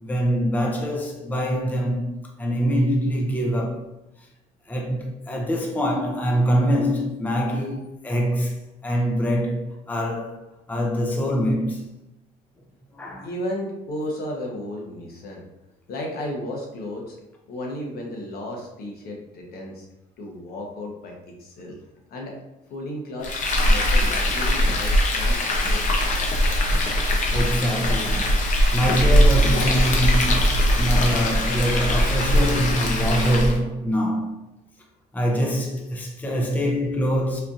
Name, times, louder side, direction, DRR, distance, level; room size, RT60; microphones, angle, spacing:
voice 1, 0.0-2.1 2.4-3.9 4.7-10.4 10.7-11.9 12.9-13.3 27.3-34.3 35.1-37.4, equal, 10° left, 0.5 m, -24 dB
voice 2, 13.2-15.4 15.9-17.2 17.5-19.9 20.2-21.1 21.4-21.8 22.1-22.3 22.7-25.8, left 1 dB, 65° left, 1.0 m, -33 dB
Frying (food), 23.2-33.6, equal, 50° left, 0.7 m, -20 dB
4.3 x 2.6 x 2.5 m
cardioid pair, 110°, 17 cm